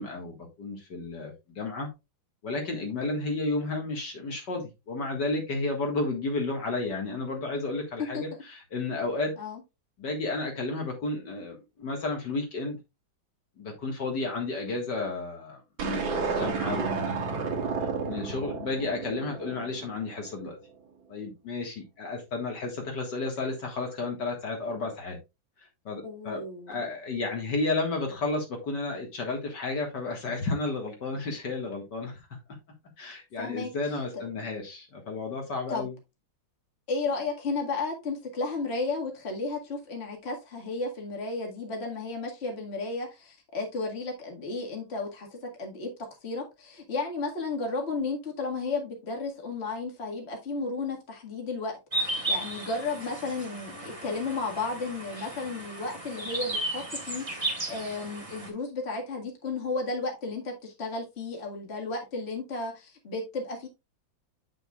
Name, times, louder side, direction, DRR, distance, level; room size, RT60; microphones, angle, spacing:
voice 1, 0.0-1.9 2.4-9.3 10.0-12.8 13.6-17.5 17.8-20.6 21.1-25.2 25.6-32.2 33.0-35.9, left 3 dB, 60° left, 2.3 m, -32 dB
sound 1, 15.8-20.2, right 5 dB, 80° right, 2.3 m, -31 dB
voice 2, 26.0-26.8 33.4-33.7 34.1-34.2 35.7-35.8 36.9-45.9 46.2-57.2 57.7-63.7, left 3 dB, 35° left, 2.1 m, -33 dB
sound 2, 51.9-58.5, right 2 dB, 15° right, 2.3 m, -34 dB
9.1 x 6.3 x 2.4 m
omnidirectional pair, 2.1 m